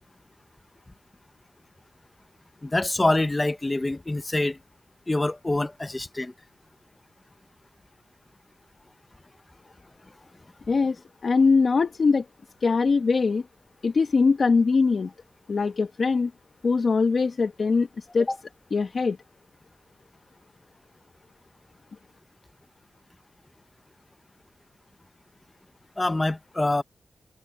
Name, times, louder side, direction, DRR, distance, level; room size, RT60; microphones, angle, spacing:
voice 1, 2.6-4.6 5.1-6.3 18.3-18.4 26.0-26.8, left 2 dB, 20° left, 1.0 m, -25 dB
voice 2, 10.7-12.2 12.6-13.4 13.8-15.1 15.5-16.3 16.6-18.3 18.7-19.2, left 4 dB, 50° left, 1.4 m, -22 dB
wide cardioid pair, 125°, 0 cm